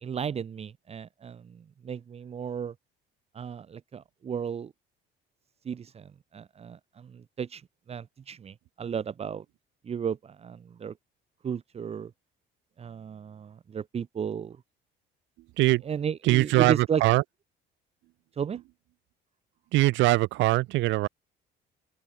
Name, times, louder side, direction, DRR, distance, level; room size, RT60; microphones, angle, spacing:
voice 1, 0.0-2.7 3.3-4.7 5.7-7.6 7.9-9.4 9.8-10.9 11.4-12.1 12.8-14.6 15.9-17.0 18.4-18.6, right 7 dB, 30° right, 2.0 m, -34 dB
voice 2, 16.2-17.2 19.7-21.1, right 19 dB, 75° right, 1.1 m, -22 dB
open air
cardioid pair, 145°, 19 cm